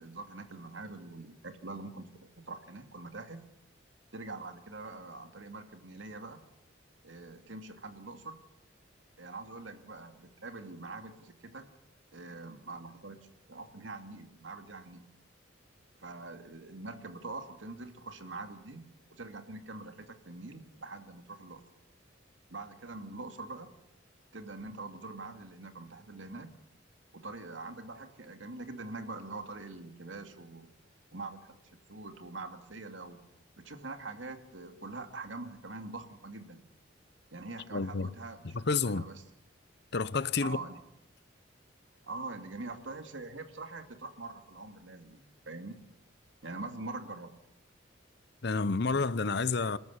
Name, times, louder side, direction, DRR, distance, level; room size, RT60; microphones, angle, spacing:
voice 1, 0.0-3.4 4.1-6.4 7.0-8.4 9.2-11.7 12.1-13.2 13.5-15.0 16.0-18.8 19.1-21.6 22.5-23.7 24.3-26.5 27.1-30.7 31.1-33.2 33.6-36.6 37.3-39.2 40.4-40.8 42.0-45.8 46.4-47.3, right 3 dB, 85° right, 2.4 m, -44 dB
voice 2, 37.7-38.1 38.5-39.0 39.9-40.6 48.4-49.8, left 4 dB, 60° left, 0.8 m, -29 dB
27.5 x 13.5 x 8.4 m
head